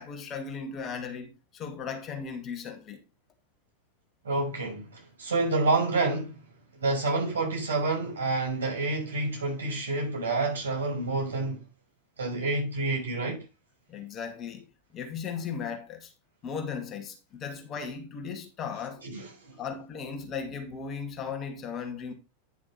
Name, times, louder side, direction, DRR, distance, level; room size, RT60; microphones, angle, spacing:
voice 1, 0.0-3.0 13.9-16.1 16.4-19.0 19.6-22.1, left 6 dB, 30° left, 2.2 m, -37 dB
voice 2, 4.2-6.4 6.8-11.6 12.2-13.4 19.0-19.6, right 3 dB, 65° right, 6.0 m, -28 dB
10.5 x 6.0 x 4.2 m
figure-of-eight pair, 90°, 0 cm